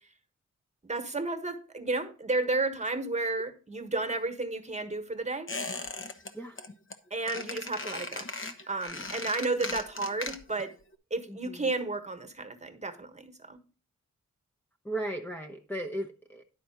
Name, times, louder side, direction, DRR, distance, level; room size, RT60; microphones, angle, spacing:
voice 1, 0.8-5.5 7.1-8.3 8.7-10.7 11.1-13.6, right 3 dB, 25° right, 1.4 m, -32 dB
Squeak, 5.5-6.3 6.6-6.9 7.3-10.7 10.9-11.0, left 3 dB, 45° left, 1.1 m, -38 dB
voice 2, 11.3-11.7 14.8-16.4, right 1 dB, 5° left, 0.9 m, -36 dB
11.0 x 4.2 x 5.7 m
cardioid pair, 75°, 29 cm